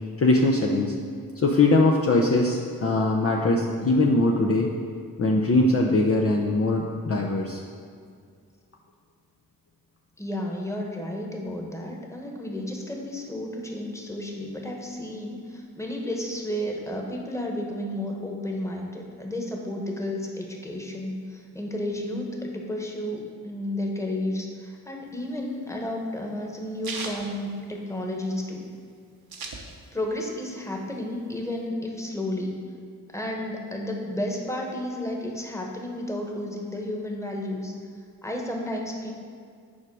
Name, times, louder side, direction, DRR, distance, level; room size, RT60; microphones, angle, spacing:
voice 1, 0.2-0.9 1.4-4.7 5.2-7.6, left 2 dB, 35° left, -1 dB, 0.7 m, -21 dB
voice 2, 10.2-28.7 29.9-32.6 33.1-37.7 38.2-39.1, left 1 dB, 5° left, 0 dB, 1.4 m, -32 dB
sound 1, 25.1-28.3 28.6-28.7 28.9-30.2 30.5-31.6, right 4 dB, 70° right, 1.0 m, -38 dB
7.3 x 5.0 x 4.8 m, 2.2 s
cardioid pair, 55°, 38 cm